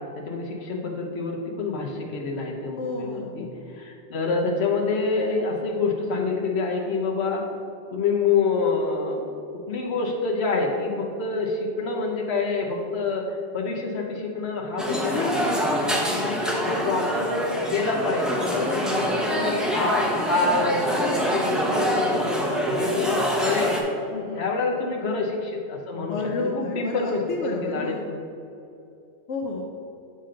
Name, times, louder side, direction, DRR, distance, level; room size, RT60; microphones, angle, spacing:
voice 1, 0.0-3.5 3.7-7.4 7.9-9.2 9.7-13.3 13.5-15.3 16.1-23.7 24.3-28.2, left 4 dB, 65° left, 0 dB, 1.2 m, -27 dB
voice 2, 2.8-3.4 15.1-16.2 18.5-19.1 24.1-24.5 25.9-28.1 29.3-29.7, left 3 dB, 85° left, 0 dB, 1.0 m, -31 dB
sound 1, 14.8-23.8, equal, ahead, 0.6 m, -25 dB
7.1 x 5.3 x 3.8 m, 2.7 s
omnidirectional pair, 1.2 m